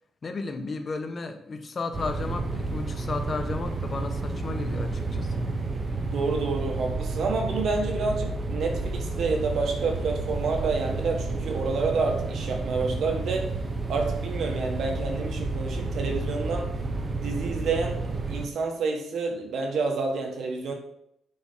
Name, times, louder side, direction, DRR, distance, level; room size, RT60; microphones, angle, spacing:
voice 1, 0.2-5.6, left 3 dB, 40° left, 5 dB, 1.4 m, -34 dB
sound 1, 1.9-18.5, right 3 dB, 35° right, 1.2 m, -31 dB
voice 2, 6.1-13.5 13.9-16.7 17.2-18.0 18.3-20.7, right 4 dB, 70° right, 3 dB, 1.7 m, -28 dB
8.9 x 5.7 x 5.6 m, 0.75 s
cardioid pair, 100°, 0 cm